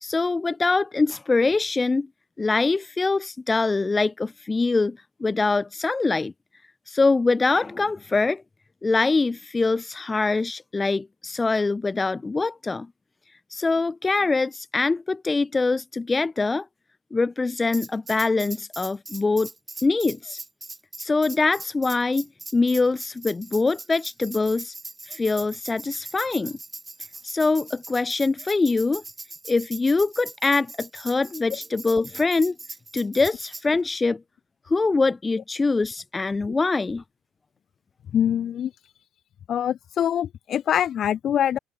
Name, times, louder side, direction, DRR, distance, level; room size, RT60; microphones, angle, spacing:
voice 1, 0.0-2.1 2.4-6.3 6.9-8.4 8.8-12.9 13.5-16.7 17.1-19.5 19.8-20.4 21.0-22.3 22.5-24.7 25.1-26.6 27.2-29.0 29.5-32.6 32.9-34.2 34.7-37.0, left 3 dB, 20° left, 0.4 m, -23 dB
Tambourine, 17.7-33.7, right 3 dB, 15° right, 1.0 m, -40 dB
voice 2, 38.1-38.7 39.5-41.6, left 9 dB, 50° left, 0.7 m, -24 dB
open air
supercardioid pair, 90°, 0 cm